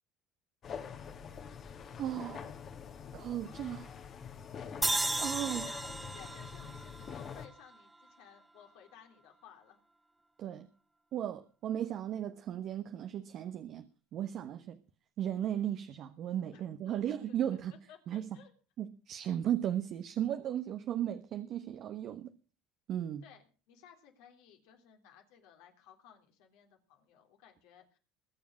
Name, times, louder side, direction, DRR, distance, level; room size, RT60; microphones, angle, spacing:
sound 1, 0.6-7.5, left 7 dB, 45° left, 2.2 m, -45 dB
voice 1, 2.0-2.5 3.1-3.9 5.2-5.7 10.4-10.7 11.1-14.8 15.2-17.7 18.1-18.3 18.8-22.3 22.9-23.2, right 10 dB, 55° right, 1.2 m, -36 dB
sound 2, 4.8-8.1, right 2 dB, 10° right, 0.6 m, -35 dB
voice 2, 5.5-9.8 16.5-17.6 17.9-18.5 23.2-28.0, left 9 dB, 75° left, 3.4 m, -58 dB
21.5 x 7.2 x 6.2 m
hypercardioid pair, 80°, 0 cm